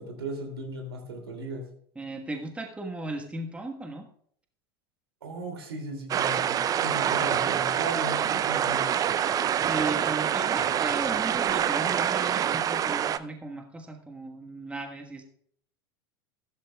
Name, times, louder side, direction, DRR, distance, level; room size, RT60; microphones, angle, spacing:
voice 1, 0.0-1.7 5.2-8.9, right 1 dB, 75° right, 3 dB, 2.6 m, -37 dB
voice 2, 1.9-4.1 9.6-15.2, right 2 dB, 10° right, 3 dB, 1.3 m, -36 dB
sound 1, 6.1-13.2, right 9 dB, 25° right, 0.5 m, -26 dB
14.5 x 12.5 x 2.3 m, 0.64 s
figure-of-eight pair, 85°, 13 cm